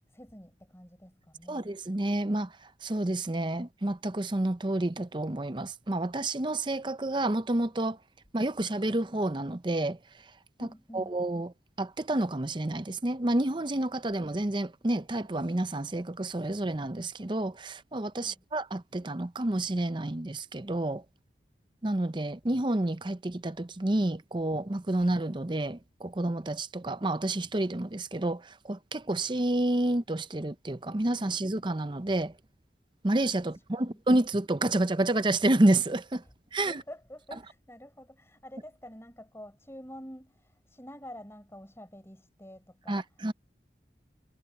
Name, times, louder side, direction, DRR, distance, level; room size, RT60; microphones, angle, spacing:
voice 1, 0.1-1.7 10.6-11.2 18.2-18.4 33.4-34.0 36.2-36.3 36.7-43.3, equal, 15° left, 4.6 m, -48 dB
voice 2, 1.5-2.5 2.8-8.0 8.3-10.0 10.9-11.5 11.8-21.0 21.8-32.3 33.0-36.2 36.5-36.8 42.9-43.3, right 1 dB, 25° right, 0.7 m, -29 dB
head